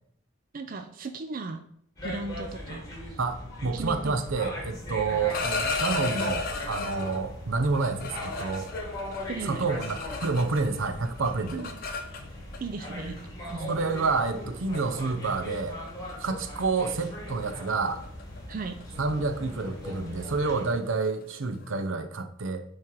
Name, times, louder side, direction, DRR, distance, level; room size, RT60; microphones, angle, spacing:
voice 1, 0.5-1.6 2.0-3.2 3.7-4.2 9.3-9.7 11.5-11.8 12.6-13.2 13.5-13.9 18.5-18.8, right 3 dB, 45° right, 7 dB, 0.4 m, -36 dB
sound 1, 2.0-20.7, left 1 dB, 20° left, 2.2 m, -39 dB
voice 2, 3.2-8.7 9.4-11.6 13.7-15.8 16.2-18.0 19.0-22.6, right 4 dB, 80° right, 8 dB, 0.7 m, -29 dB
sound 2, 5.1-7.2 7.7-10.8 11.0-12.6 13.5-13.6 14.0-14.3 14.7-15.0 15.3-15.6 15.9-16.1 16.4-21.8, left 4 dB, 50° left, 0.8 m, -35 dB
9.3 x 3.2 x 4.6 m, 0.67 s
head